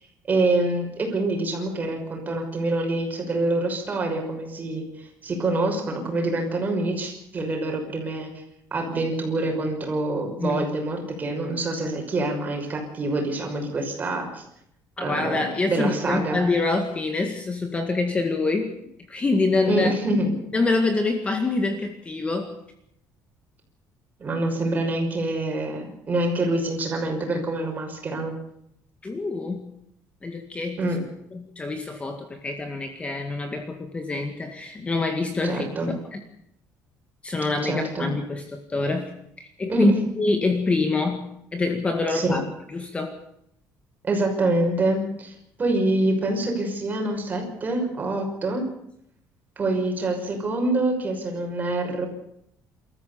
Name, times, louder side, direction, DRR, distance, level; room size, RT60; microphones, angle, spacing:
voice 1, 0.3-8.3 8.7-14.4 15.0-16.4 19.7-20.4 24.2-28.3 30.8-31.0 35.4-35.9 37.6-38.1 39.7-39.9 42.1-42.4 44.0-45.3 45.6-48.6 49.6-52.1, right 2 dB, 25° right, 2 dB, 6.0 m, -26 dB
voice 2, 15.0-18.8 19.1-19.9 20.5-22.5 29.0-29.7 30.2-30.9 31.3-36.2 37.2-39.1 39.4-41.3 41.5-42.4 42.7-43.2, left 3 dB, 20° left, 6 dB, 2.0 m, -26 dB
27.5 x 14.0 x 7.0 m, 0.74 s
cardioid pair, 160°, 7 cm